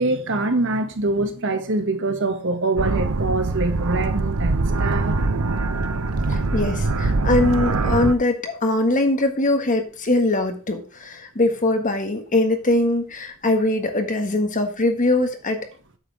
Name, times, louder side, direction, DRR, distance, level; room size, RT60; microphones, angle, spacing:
voice 1, 0.0-5.2, right 2 dB, 60° right, 1.6 m, -24 dB
sound 1, 2.8-8.1, right 3 dB, 90° right, 0.8 m, -23 dB
voice 2, 6.3-15.6, left 2 dB, 40° left, 1.6 m, -22 dB
8.7 x 6.8 x 4.7 m
head